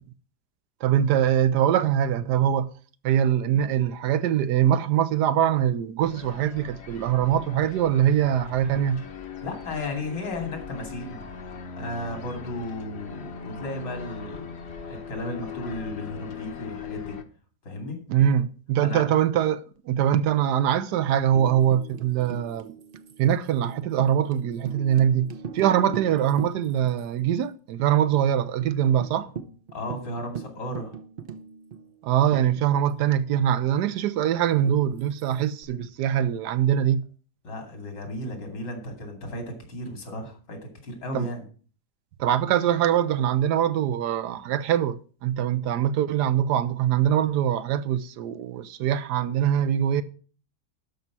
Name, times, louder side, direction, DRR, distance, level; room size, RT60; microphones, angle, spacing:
voice 1, 0.8-2.7 3.0-9.0 18.1-22.7 23.2-29.3 32.0-37.0 41.1-41.3 42.2-50.0, right 10 dB, 75° right, 1.2 m, -23 dB
sound 1, 6.0-17.2, left 5 dB, 45° left, 1.0 m, -40 dB
voice 2, 9.4-11.2 11.8-14.5 14.9-17.2 17.6-18.0 18.8-19.0 29.7-31.0 37.4-41.5, left 1 dB, 80° left, 3.2 m, -34 dB
Tambourine, 21.3-27.0 27.3-27.4 27.8-28.3 28.6-28.7 29.0-33.1 34.7-35.6, right 6 dB, 55° right, 0.6 m, -40 dB
12.0 x 5.5 x 6.0 m
omnidirectional pair, 1.9 m